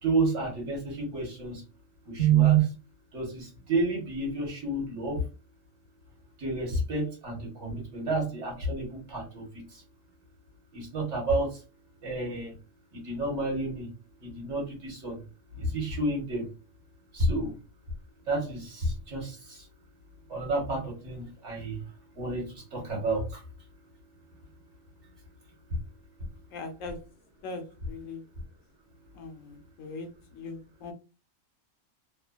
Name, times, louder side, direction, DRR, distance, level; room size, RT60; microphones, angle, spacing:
voice 1, 0.0-1.6 2.0-2.7 3.1-5.2 6.4-9.8 10.7-11.6 12.0-12.5 12.9-13.9 14.2-15.2 15.5-16.5 17.1-17.5 18.3-19.7 20.3-21.8 22.2-23.4 25.7-25.8, right 4 dB, 60° right, -1 dB, 1.5 m, -29 dB
voice 2, 26.5-27.0 27.4-28.2 29.1-30.9, left 3 dB, 70° left, 6 dB, 1.0 m, -40 dB
3.1 x 2.2 x 2.3 m, 0.32 s
omnidirectional pair, 1.4 m